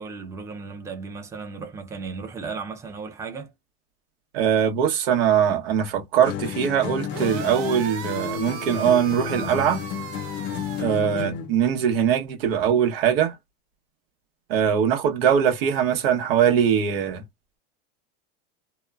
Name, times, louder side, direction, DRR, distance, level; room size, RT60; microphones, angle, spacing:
voice 1, 0.0-3.5, right 4 dB, 10° right, 0.5 m, -35 dB
voice 2, 4.3-9.8 10.8-13.3 14.5-17.2, right 8 dB, 80° right, 1.0 m, -21 dB
sound 1, 6.2-11.6, left 9 dB, 40° left, 0.4 m, -32 dB
sound 2, 7.1-10.8, right 7 dB, 50° right, 0.7 m, -36 dB
2.8 x 2.2 x 2.3 m
supercardioid pair, 125°, 29 cm